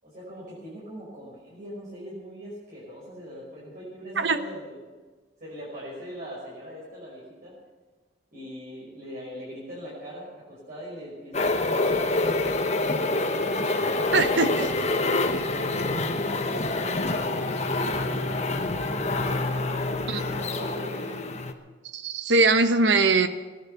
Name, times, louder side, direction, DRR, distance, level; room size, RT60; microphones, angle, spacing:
voice 1, 0.0-4.7 5.4-7.5 8.3-14.8 15.7-21.3, equal, 50° right, -8 dB, 5.6 m, -41 dB
sound 1, 11.3-21.5, left 2 dB, 40° left, 1.1 m, -26 dB
voice 2, 14.1-14.5 20.1-20.2 21.9-23.3, right 3 dB, 80° right, 10 dB, 1.0 m, -21 dB
18.0 x 11.0 x 7.0 m, 1.3 s
head